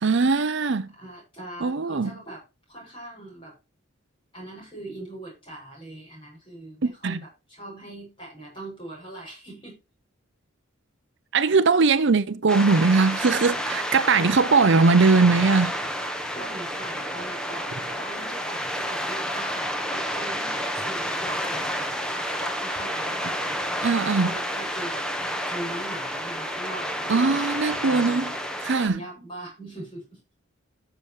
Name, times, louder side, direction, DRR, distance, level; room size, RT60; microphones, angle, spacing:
voice 1, 0.0-0.9 1.6-2.1 6.8-7.2 11.3-15.8 23.8-24.3 27.1-28.3 28.6-29.0, right 4 dB, 60° right, 0.6 m, -20 dB
voice 2, 1.0-2.4 2.7-3.5 4.3-9.8 16.3-23.6 24.1-30.2, right 1 dB, 25° left, 7.1 m, -41 dB
sound 1, 12.5-28.9, equal, 5° left, 1.2 m, -30 dB
14.0 x 7.0 x 3.2 m
head